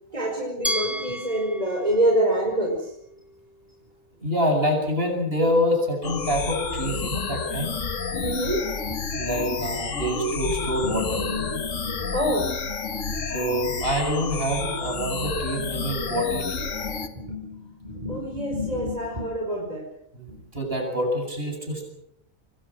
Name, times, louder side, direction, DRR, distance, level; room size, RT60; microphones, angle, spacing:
voice 1, 0.1-2.9 8.1-8.6 8.9-9.0 9.3-9.5 10.6-12.5 16.8-19.8 20.3-20.4, equal, 30° right, -1 dB, 5.5 m, -27 dB
Glass, 0.6-3.6, equal, ahead, 1.1 m, -33 dB
voice 2, 4.2-7.7 9.1-11.2 13.3-16.9 20.1-21.9, equal, 45° right, 3 dB, 8.4 m, -26 dB
sound 1, 6.0-17.1, left 5 dB, 65° left, 1.9 m, -30 dB
27.5 x 23.0 x 6.3 m, 0.74 s
omnidirectional pair, 1.4 m